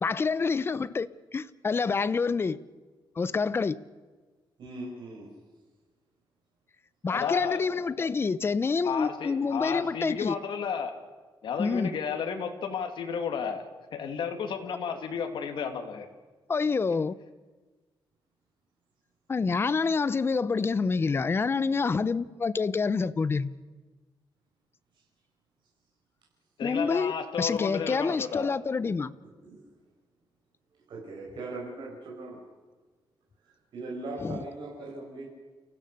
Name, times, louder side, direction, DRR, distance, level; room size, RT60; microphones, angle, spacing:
voice 1, 0.0-1.1 1.3-2.6 3.2-3.8 7.0-10.4 11.6-11.9 16.5-17.1 19.3-23.5 26.6-29.1 34.2-34.4, left 4 dB, 30° left, 0.7 m, -27 dB
voice 2, 4.6-5.3 24.9-25.0 29.2-29.7 30.9-32.4 33.4-35.3, right 2 dB, 65° right, 6.4 m, -40 dB
voice 3, 7.1-7.6 8.0-8.1 8.8-10.9 11.4-13.7 13.9-16.1 26.6-28.5, left 6 dB, 65° left, 2.5 m, -32 dB
30.0 x 15.5 x 6.7 m
cardioid pair, 140°, 9 cm